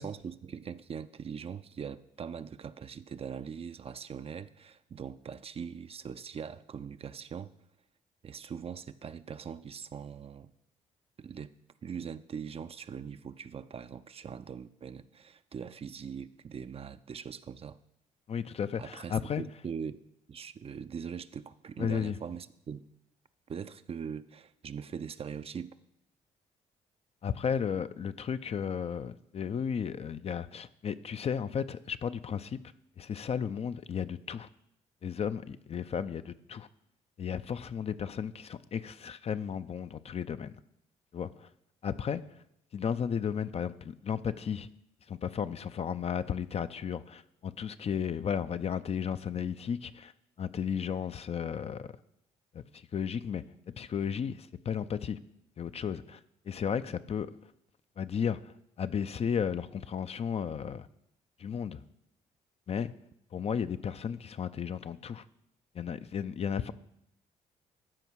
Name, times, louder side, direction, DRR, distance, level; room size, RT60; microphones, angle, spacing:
voice 1, 0.0-7.5 8.2-10.5 11.2-11.5 11.8-17.8 18.8-20.0 20.3-22.9 23.5-25.8, right 7 dB, 40° right, 12 dB, 0.5 m, -41 dB
voice 2, 18.3-19.4 21.8-22.2 27.2-32.6 33.0-34.5 35.0-36.7 37.2-40.5 41.1-41.5 41.8-42.4 42.7-44.7 45.1-50.1 50.4-51.9 52.5-55.2 55.6-56.2 56.5-57.3 58.0-60.9 61.4-61.8 62.7-62.9 63.3-65.2 65.7-66.7, left 7 dB, 40° left, 12 dB, 0.5 m, -34 dB
13.5 x 4.9 x 4.7 m, 0.78 s
hypercardioid pair, 55°, 15 cm